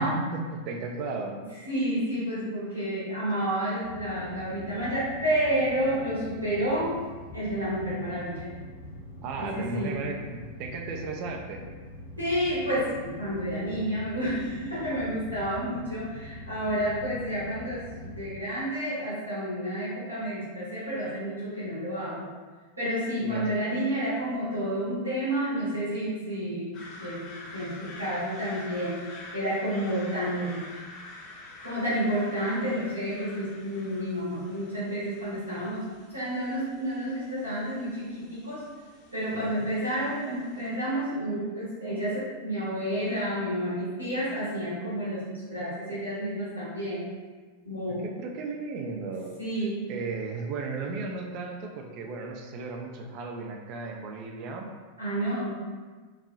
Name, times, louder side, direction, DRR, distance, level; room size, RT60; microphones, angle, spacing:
voice 1, 0.0-1.4 9.2-11.6 23.2-23.5 39.3-39.7 47.9-49.3 49.9-54.7, right 3 dB, 40° right, 2 dB, 0.4 m, -35 dB
voice 2, 1.6-7.0 7.3-8.5 9.4-9.9 12.2-22.3 22.8-26.7 27.0-29.0 29.3-30.7 31.6-38.6 39.1-47.1 47.6-48.0 49.4-49.8 55.0-55.6, equal, 80° right, -10 dB, 1.1 m, -30 dB
sound 1, 3.8-18.3, left 2 dB, 80° left, 0.8 m, -44 dB
sound 2, 26.7-40.7, left 2 dB, 35° left, 0.7 m, -47 dB
2.9 x 2.6 x 2.4 m, 1.4 s
figure-of-eight pair, 90°, 0 cm